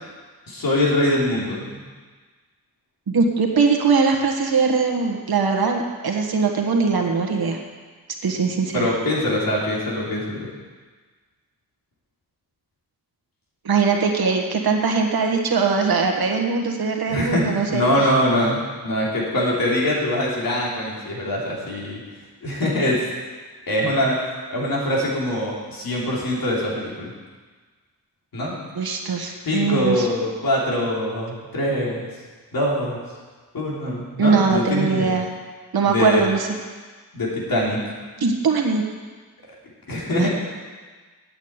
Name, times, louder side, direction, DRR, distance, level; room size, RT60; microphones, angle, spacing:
voice 1, 0.5-1.8 8.7-10.5 17.1-22.0 22.4-23.0 23.7-24.2 24.5-27.1 28.3-28.5 29.4-32.0 32.5-33.0 33.5-35.1 35.8-36.2 37.1-37.8 39.9-40.3, left 1 dB, 65° left, -4 dB, 3.2 m, -23 dB
voice 2, 3.1-7.6 8.2-8.9 13.6-17.8 28.7-30.1 34.2-35.3 35.7-36.5 38.2-38.8 40.1-40.3, right 5 dB, 75° right, 2 dB, 1.5 m, -21 dB
8.8 x 8.3 x 8.9 m, 1.4 s
wide cardioid pair, 175°, 37 cm